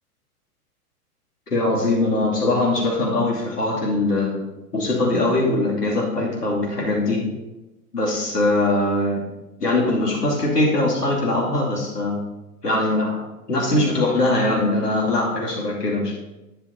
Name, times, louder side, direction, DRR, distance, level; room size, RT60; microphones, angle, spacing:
voice 1, 1.5-4.4 4.7-7.2 7.9-9.2 9.6-12.2 12.6-16.1, left 2 dB, 85° left, -3 dB, 2.6 m, -21 dB
11.0 x 9.5 x 2.8 m, 1.0 s
figure-of-eight pair, 95°, 46 cm